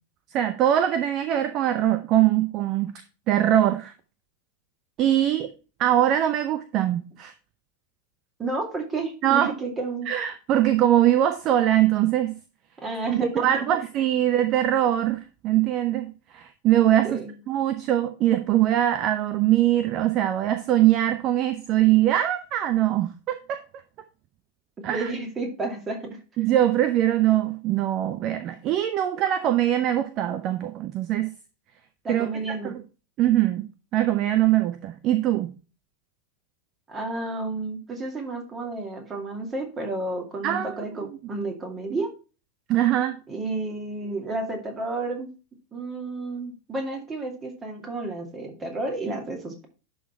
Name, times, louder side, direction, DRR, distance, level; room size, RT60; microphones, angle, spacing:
voice 1, 0.3-2.9 3.3-3.9 5.0-5.5 5.8-7.3 9.2-9.5 10.1-12.3 13.1-17.2 17.5-23.6 24.8-25.1 26.4-31.3 32.1-32.3 32.6-32.8 33.2-33.7 33.9-35.5 40.4-40.8 42.7-43.2, right 12 dB, 35° right, 11 dB, 0.6 m, -22 dB
voice 2, 8.4-10.1 12.8-13.5 17.0-17.4 24.9-26.2 32.0-32.7 36.9-42.1 43.3-45.3 45.7-49.7, right 3 dB, 20° right, 3 dB, 2.4 m, -31 dB
11.0 x 4.1 x 4.5 m, 0.33 s
figure-of-eight pair, 90°, 0 cm